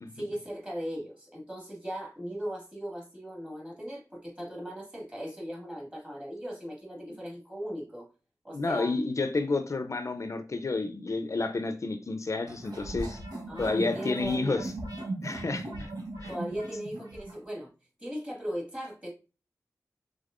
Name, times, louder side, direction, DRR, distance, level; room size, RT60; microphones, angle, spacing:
voice 1, 0.1-8.1 8.4-9.0 13.5-14.6 16.3-17.7 18.0-19.1, equal, 20° right, 1.9 m, -38 dB
voice 2, 8.5-13.2 13.6-14.7 15.2-15.9 16.2-16.3, left 3 dB, 55° left, 0.5 m, -30 dB
sound 1, 12.5-17.4, right 2 dB, 90° right, 1.1 m, -38 dB
5.2 x 3.6 x 2.4 m
wide cardioid pair, 95°, 6 cm